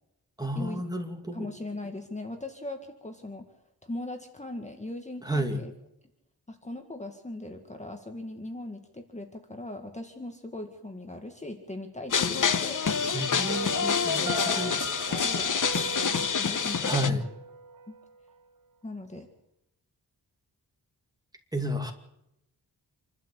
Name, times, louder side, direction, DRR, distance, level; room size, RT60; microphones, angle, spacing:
voice 1, 0.4-1.5 5.2-5.6 13.1-14.8 16.8-17.2 21.5-21.9, equal, 10° right, 4 dB, 2.5 m, -31 dB
voice 2, 1.3-3.5 3.8-5.7 6.5-13.1 13.4-17.2 18.8-19.3, left 2 dB, 15° left, 5 dB, 1.9 m, -40 dB
sound 1, 12.1-17.1, left 6 dB, 50° left, 1.1 m, -27 dB
Piano, 13.5-18.4, right 4 dB, 55° right, 1.7 m, -39 dB
27.5 x 12.5 x 8.5 m, 0.85 s
wide cardioid pair, 150°, 40 cm